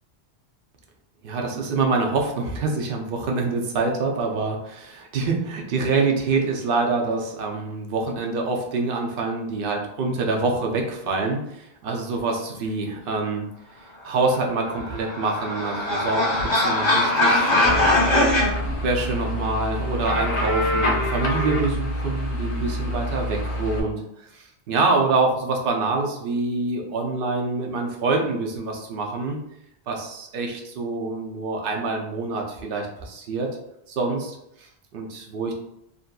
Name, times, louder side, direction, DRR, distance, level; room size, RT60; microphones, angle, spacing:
voice 1, 1.2-13.5 14.0-18.0 18.8-24.0 24.3-29.4 29.9-33.5 33.9-35.5, right 3 dB, 65° right, 1 dB, 0.7 m, -26 dB
sound 1, 14.6-18.5, left 1 dB, 30° left, 0.8 m, -21 dB
sound 2, 17.6-23.8, left 1 dB, 45° left, 0.4 m, -26 dB
2.6 x 2.5 x 2.2 m, 0.80 s
omnidirectional pair, 1.1 m